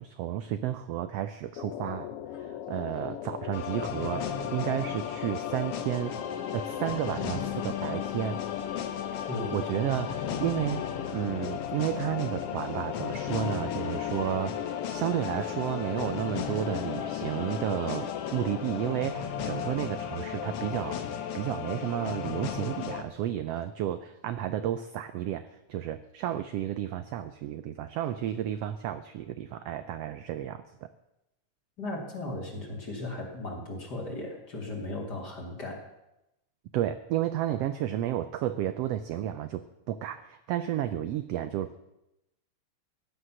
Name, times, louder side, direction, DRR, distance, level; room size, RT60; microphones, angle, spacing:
voice 1, 0.0-6.2 6.5-8.4 9.2-10.9 11.1-30.9 36.7-41.8, right 11 dB, 75° right, 11 dB, 1.5 m, -32 dB
sound 1, 1.6-18.9, left 11 dB, 85° left, 1.2 m, -39 dB
sound 2, 3.5-23.0, left 8 dB, 65° left, 1.8 m, -35 dB
voice 2, 31.8-35.8, left 2 dB, 35° left, 0 dB, 3.0 m, -36 dB
16.0 x 10.5 x 6.2 m, 0.89 s
omnidirectional pair, 3.4 m